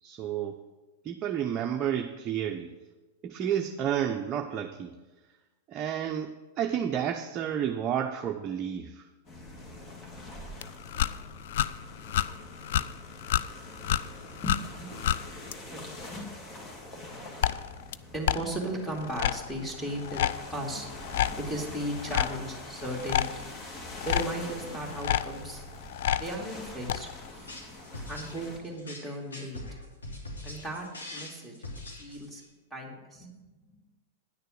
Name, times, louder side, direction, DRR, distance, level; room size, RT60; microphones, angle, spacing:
voice 1, 0.0-0.6 1.0-2.7 3.2-4.9 5.7-9.0, right 9 dB, 35° right, 4 dB, 0.6 m, -31 dB
sound 1, 9.3-28.6, left 1 dB, 30° left, 1.8 m, -45 dB
sound 2, 10.6-15.5 17.4-17.9 18.3-26.3 26.9-27.3, left 11 dB, 65° left, 0.3 m, -31 dB
voice 2, 14.4-14.9 15.7-16.3 18.1-20.2 20.5-20.9 21.4-23.5 24.1-25.6 26.2-27.1 28.1-29.6 30.4-31.6 32.0-32.4 32.7-33.3, right 1 dB, 5° left, 0 dB, 2.4 m, -36 dB
sound 3, 27.3-32.5, left 2 dB, 85° left, 2.9 m, -42 dB
9.9 x 6.7 x 6.2 m, 1.2 s
hypercardioid pair, 100°, 0 cm